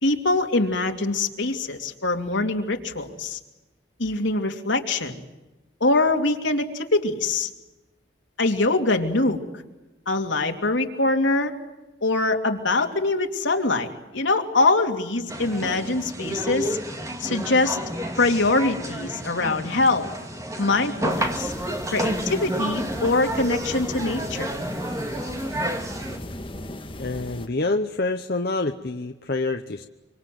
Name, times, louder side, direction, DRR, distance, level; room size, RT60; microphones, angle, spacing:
voice 1, 0.0-3.4 4.0-5.2 5.8-7.5 8.4-9.4 10.1-11.5 12.0-16.8 17.2-17.8 18.1-20.1 20.6-21.5 21.9-24.5, left 2 dB, 80° left, 3 dB, 2.8 m, -23 dB
sound 1, 15.3-26.2, equal, 15° right, 2.1 m, -30 dB
sound 2, 21.1-27.5, left 1 dB, 25° left, 1.8 m, -39 dB
voice 2, 27.0-29.9, left 2 dB, 50° left, 6 dB, 0.9 m, -27 dB
25.0 x 25.0 x 7.8 m, 1.1 s
head